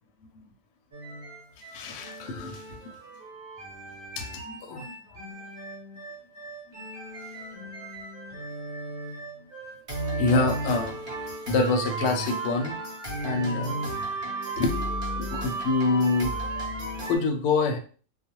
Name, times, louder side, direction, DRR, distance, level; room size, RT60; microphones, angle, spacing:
sound 1, 0.9-17.2, right 2 dB, 45° right, 0.8 m, -34 dB
voice 1, 1.7-2.8 4.2-5.2 10.2-11.0 11.5-12.8 13.2-13.8 14.6-14.9 15.2-16.4 17.1-17.8, left 3 dB, 70° left, 4 dB, 0.8 m, -26 dB
2.3 x 2.2 x 2.9 m, 0.41 s
omnidirectional pair, 1.5 m